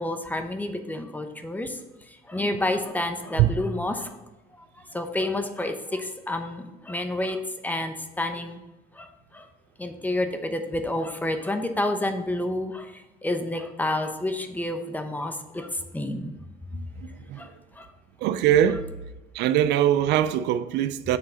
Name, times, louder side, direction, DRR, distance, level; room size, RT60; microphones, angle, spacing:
voice 1, 0.0-1.7 2.3-4.1 4.9-8.6 9.0-9.1 9.3-9.4 9.8-12.9 13.2-15.7 15.9-16.3 17.4-17.5 17.8-17.9, left 1 dB, 10° left, 0.8 m, -29 dB
voice 2, 18.2-18.9 19.3-21.2, right 11 dB, 85° right, 0.4 m, -22 dB
7.1 x 3.7 x 6.4 m
cardioid pair, 110°, 17 cm